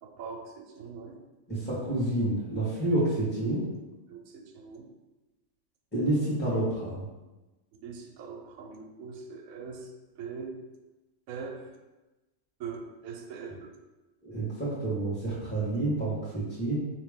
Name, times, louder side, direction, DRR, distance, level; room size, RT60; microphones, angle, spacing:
voice 1, 0.0-1.2 4.1-4.9 7.7-10.6 11.3-11.7 12.6-13.7, right 5 dB, 85° right, 4 dB, 1.0 m, -42 dB
voice 2, 1.5-3.7 5.9-7.1 14.2-16.8, right 2 dB, 10° left, -9 dB, 1.3 m, -29 dB
4.9 x 2.9 x 3.6 m, 1.1 s
omnidirectional pair, 1.4 m